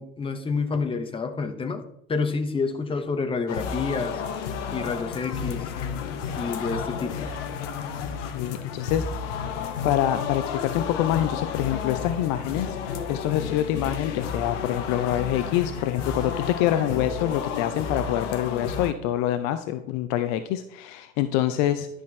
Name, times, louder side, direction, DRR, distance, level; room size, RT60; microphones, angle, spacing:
voice 1, 0.0-4.2 4.7-5.7 6.4-7.3, left 4 dB, 15° left, 7 dB, 0.8 m, -29 dB
sound 1, 3.5-18.9, left 6 dB, 60° left, 1.0 m, -32 dB
voice 2, 8.2-9.4 9.8-12.8 13.1-21.9, left 12 dB, 40° left, 10 dB, 0.6 m, -26 dB
10.5 x 6.1 x 3.3 m, 0.78 s
figure-of-eight pair, 70°, 41 cm